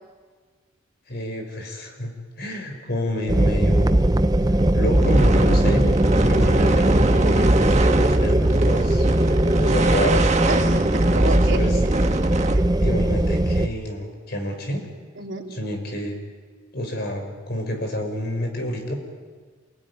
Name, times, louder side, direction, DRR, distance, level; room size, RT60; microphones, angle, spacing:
voice 1, 1.1-4.1 4.7-5.9 6.3-9.1 9.6-10.3 11.1-11.8 12.8-14.8 15.5-16.2 16.7-18.9, equal, 55° left, 4 dB, 5.5 m, -28 dB
sound 1, 3.3-13.7, right 1 dB, 20° right, 0.7 m, -19 dB
sound 2, 4.6-12.6, right 2 dB, 35° right, 1.6 m, -25 dB
voice 2, 10.5-12.1 12.5-12.6 15.2-15.5, right 2 dB, 70° right, 0 dB, 3.7 m, -31 dB
29.0 x 19.0 x 9.8 m, 1.5 s
head